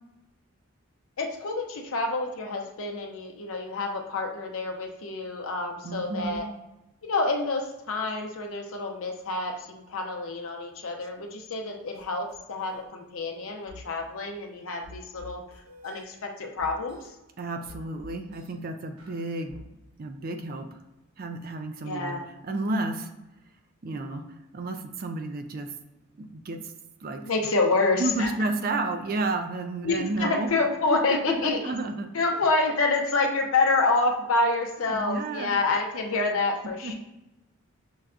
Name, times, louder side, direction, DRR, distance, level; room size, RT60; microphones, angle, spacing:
voice 1, 1.2-6.5 7.0-15.4 15.8-17.0 21.8-22.3 27.2-28.3 29.8-31.6 32.1-36.9, left 3 dB, 75° left, 2 dB, 0.6 m, -27 dB
voice 2, 5.8-6.4 17.4-19.5 20.0-20.8 21.2-23.1 23.8-24.3 24.5-25.7 26.2-26.7 27.0-27.2 28.0-30.5 30.9-31.0 31.3-32.1 34.8-35.5 36.8-36.9, right 2 dB, 40° right, 6 dB, 0.3 m, -31 dB
sound 1, 11.9-12.0 12.3-12.8 13.7-13.8 14.8-16.0 16.6-17.1 17.6-18.5 19.0-19.6, left 2 dB, 80° right, 1.0 m, -47 dB
5.4 x 2.2 x 2.4 m, 0.95 s
head